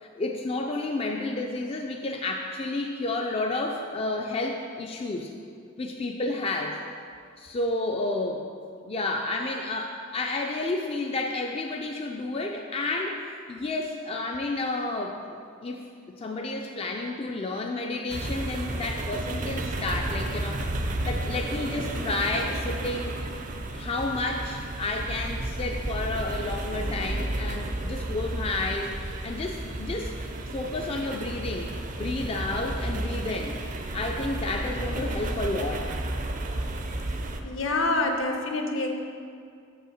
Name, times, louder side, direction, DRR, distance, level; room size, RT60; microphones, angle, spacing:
voice 1, 0.0-5.3 5.8-6.8 7.4-8.5 8.8-15.4 15.6-15.9 16.2-23.2 23.7-30.1 30.5-33.6 33.9-36.0, left 2 dB, 30° left, 2 dB, 0.4 m, -31 dB
sound 1, 18.1-37.4, right 1 dB, 40° right, 0.5 m, -32 dB
voice 2, 37.4-39.0, left 2 dB, 70° left, 3 dB, 0.9 m, -26 dB
6.6 x 5.5 x 6.3 m, 2.3 s
head